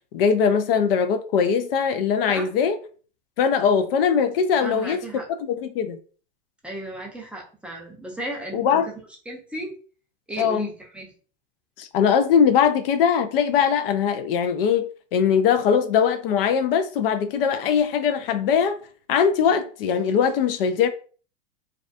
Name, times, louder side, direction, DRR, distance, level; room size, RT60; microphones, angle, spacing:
voice 1, 0.1-2.8 3.4-5.0 5.6-6.0 8.5-8.9 10.4-10.7 11.8-18.8 19.1-20.9, left 7 dB, 70° left, 0.4 m, -21 dB
voice 2, 4.6-5.3 6.6-8.9 9.3-9.7 10.3-11.1, right 1 dB, 5° right, 0.6 m, -35 dB
2.4 x 2.3 x 2.5 m
hypercardioid pair, 115°, 30 cm